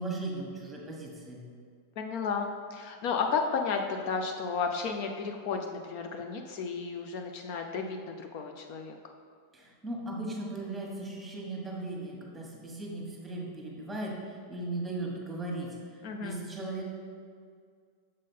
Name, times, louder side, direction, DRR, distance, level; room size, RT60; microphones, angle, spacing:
voice 1, 0.0-1.4 9.5-16.9, right 2 dB, 5° right, -2 dB, 1.4 m, -37 dB
voice 2, 2.0-9.0 16.0-16.4, left 5 dB, 55° left, 4 dB, 0.5 m, -33 dB
6.6 x 3.7 x 5.5 m, 2.1 s
supercardioid pair, 135°, 0 cm